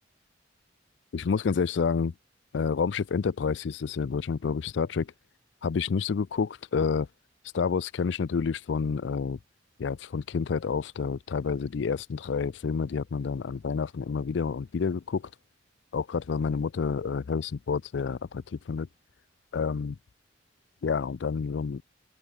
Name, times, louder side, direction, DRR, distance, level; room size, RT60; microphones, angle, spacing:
voice 1, 1.1-2.1 2.5-5.1 5.6-7.1 7.5-9.4 9.8-15.3 15.9-18.9 19.5-20.0 20.8-21.8, left 5 dB, 70° left, 0.4 m, -29 dB
open air
head